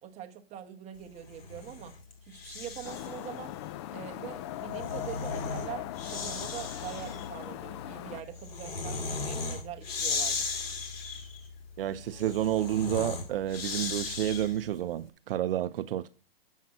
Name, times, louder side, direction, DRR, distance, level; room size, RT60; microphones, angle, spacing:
voice 1, 0.0-2.0 2.2-3.5 3.9-10.6, right 10 dB, 20° right, 1.1 m, -43 dB
Breathing, 1.2-3.2 4.5-14.7, left 4 dB, 75° left, 2.6 m, -37 dB
sound 1, 2.8-8.2, left 13 dB, 30° left, 0.4 m, -39 dB
voice 2, 11.8-16.1, right 12 dB, 65° right, 0.6 m, -30 dB
7.3 x 5.8 x 7.5 m
hypercardioid pair, 140°, 30 cm